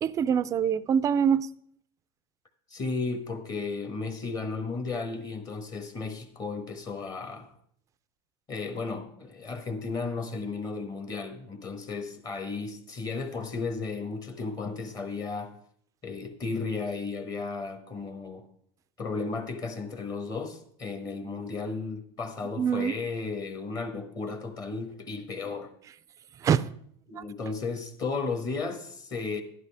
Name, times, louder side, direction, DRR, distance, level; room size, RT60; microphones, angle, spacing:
voice 1, 0.0-1.5 22.6-22.9 26.4-26.7 27.2-27.3, right 8 dB, 25° right, 0.4 m, -24 dB
voice 2, 2.7-7.5 8.5-15.5 16.0-18.4 19.0-25.7 27.1-29.4, left 4 dB, 25° left, 1.4 m, -34 dB
12.0 x 11.0 x 3.4 m
supercardioid pair, 145°, 14 cm